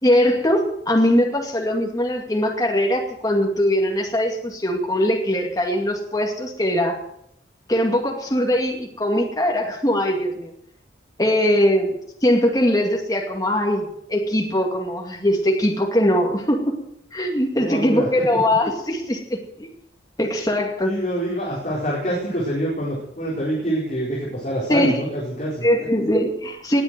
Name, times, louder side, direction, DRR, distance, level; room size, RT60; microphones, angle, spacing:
voice 1, 0.0-7.0 7.7-10.5 11.2-11.9 12.2-16.7 17.1-19.7 20.2-20.9 24.7-25.0 25.6-26.8, equal, 20° left, 1 dB, 2.3 m, -21 dB
voice 2, 17.5-18.4 20.8-25.7, equal, 40° left, -6 dB, 4.7 m, -26 dB
20.0 x 8.2 x 7.8 m, 0.78 s
head